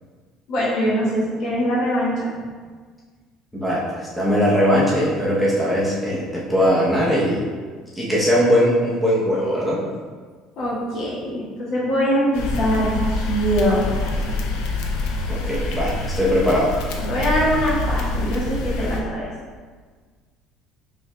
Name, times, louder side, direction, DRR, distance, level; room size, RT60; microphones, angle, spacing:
voice 1, 0.5-2.3 10.6-14.0 17.1-19.3, equal, 65° left, -7 dB, 1.4 m, -22 dB
voice 2, 3.5-7.4 8.0-9.8 15.3-16.7, equal, ahead, -7 dB, 0.7 m, -20 dB
sound 1, 12.3-19.0, left 2 dB, 80° left, 0.5 m, -26 dB
4.6 x 3.4 x 2.2 m, 1.5 s
cardioid pair, 135°, 0 cm